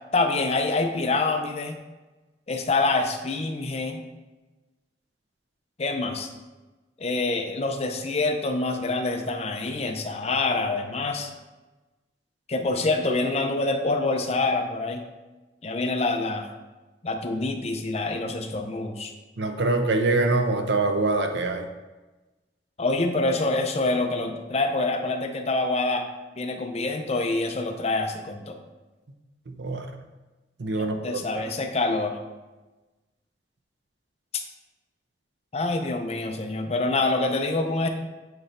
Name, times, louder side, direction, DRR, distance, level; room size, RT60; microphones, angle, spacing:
voice 1, 0.1-1.8 2.5-4.0 5.8-6.3 7.0-11.3 12.5-15.0 15.6-16.5 17.0-19.1 22.8-26.0 26.4-28.6 30.8-32.2 35.5-37.9, left 2 dB, 35° left, 5 dB, 0.6 m, -26 dB
voice 2, 19.4-21.7 29.5-29.9 30.6-31.2, right 2 dB, 75° right, 6 dB, 0.7 m, -24 dB
8.0 x 3.2 x 4.2 m, 1.2 s
head